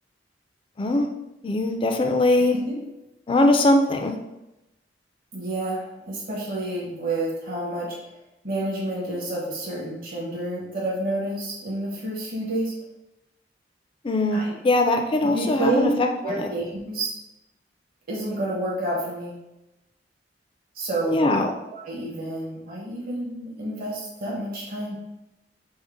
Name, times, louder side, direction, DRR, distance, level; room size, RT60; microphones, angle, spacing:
voice 1, 1.4-2.6 3.3-4.1 14.0-16.5 21.1-21.5, left 2 dB, 30° left, 4 dB, 0.4 m, -21 dB
voice 2, 5.3-8.0 8.4-12.7 14.3-14.5 15.2-15.9 16.2-17.2 18.1-19.3 20.7-21.4 21.7-25.0, right 1 dB, 55° right, -5 dB, 1.0 m, -29 dB
5.1 x 2.0 x 3.6 m, 0.93 s
head